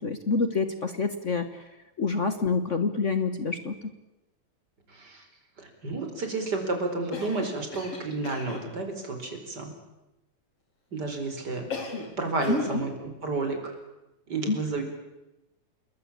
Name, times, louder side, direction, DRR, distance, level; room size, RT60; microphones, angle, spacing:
voice 1, 0.0-1.6 2.0-3.9 12.5-12.9 14.5-14.6, left 4 dB, 70° left, 10 dB, 0.7 m, -27 dB
voice 2, 4.9-5.2 5.6-9.7 10.9-11.6 12.2-12.9 13.2-13.7 14.3-14.8, right 3 dB, 30° right, 5 dB, 5.1 m, -31 dB
Cough, 7.1-8.7 11.7-12.2 12.4-12.8, left 4 dB, 50° left, 5.2 m, -37 dB
28.5 x 21.0 x 8.7 m, 0.96 s
omnidirectional pair, 3.5 m